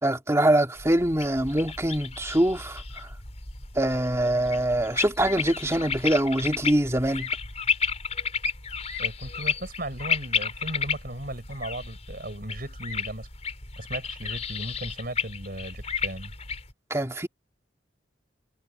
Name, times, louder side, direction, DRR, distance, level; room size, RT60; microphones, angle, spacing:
voice 1, 0.0-2.8 3.8-7.3 16.9-17.3, right 1 dB, 15° right, 2.4 m, -24 dB
sound 1, 0.8-16.7, left 6 dB, 35° left, 4.6 m, -32 dB
voice 2, 9.0-13.3 13.8-16.3, right 1 dB, 50° right, 5.9 m, -36 dB
head